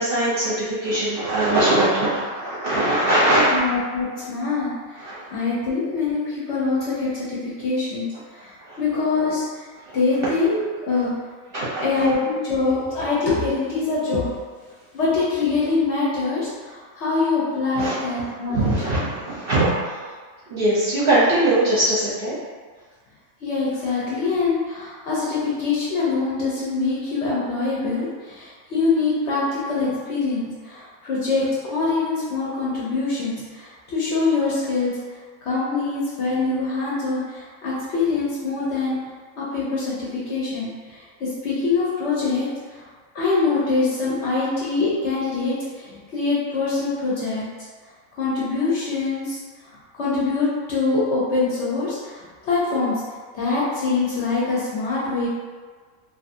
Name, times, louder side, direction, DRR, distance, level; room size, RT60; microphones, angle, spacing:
voice 1, 0.0-3.5 5.0-5.2 8.6-8.8 9.9-10.0 11.5-12.1 17.7-20.0 20.5-22.3, right 1 dB, 55° right, -10 dB, 0.7 m, -21 dB
voice 2, 3.5-9.7 9.9-11.1 11.8-14.3 14.9-18.7 23.4-34.9 35.4-38.9 39.4-42.8 43.1-47.4 48.2-49.4 49.9-53.0 53.3-55.3, left 3 dB, 65° left, -7 dB, 0.8 m, -24 dB
2.7 x 2.4 x 2.5 m, 1.5 s
omnidirectional pair, 1.5 m